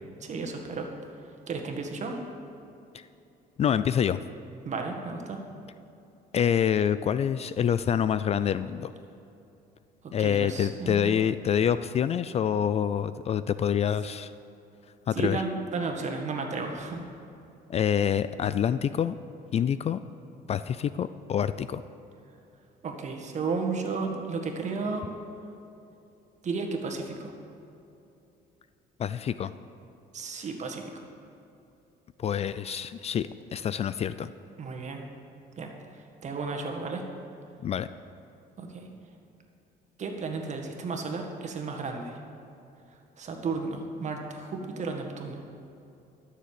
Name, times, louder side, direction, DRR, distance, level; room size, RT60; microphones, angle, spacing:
voice 1, 0.2-1.2 1.5-2.2 4.6-5.4 10.0-11.2 15.1-17.0 22.8-25.0 26.4-27.3 30.1-30.9 34.6-35.0 35.6-37.0 38.6-38.9 40.0-42.2 42.9-45.4, right 4 dB, 45° right, 2 dB, 1.7 m, -33 dB
voice 2, 3.6-4.2 6.3-8.9 10.1-14.3 15.1-15.4 17.7-19.2 19.5-20.0 20.5-21.8 29.0-29.5 32.2-34.3 37.6-37.9, left 8 dB, 40° left, 14 dB, 0.3 m, -26 dB
13.0 x 6.7 x 7.6 m, 2.7 s
cardioid pair, 110°, 17 cm